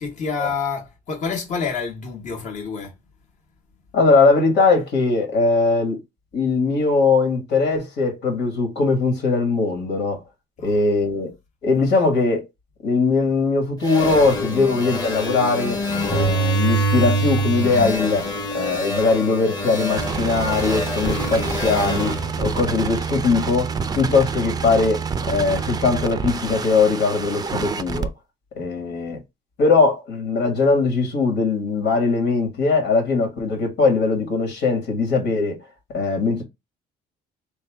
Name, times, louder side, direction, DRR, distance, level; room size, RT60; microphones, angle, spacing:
voice 1, 0.0-3.0 10.6-10.8, left 5 dB, 45° left, 1.2 m, -28 dB
voice 2, 3.9-6.0 6.3-10.2 10.6-11.3 11.6-12.5 12.8-15.8 16.1-18.3 18.5-25.0 25.3-28.1 28.6-29.2 29.6-35.6 35.9-36.4, left 4 dB, 80° left, 1.8 m, -20 dB
sound 1, 13.8-23.3, right 1 dB, 25° left, 1.0 m, -25 dB
sound 2, 19.7-28.1, right 5 dB, 25° right, 0.4 m, -27 dB
3.5 x 2.7 x 3.4 m
cardioid pair, 110°, 17 cm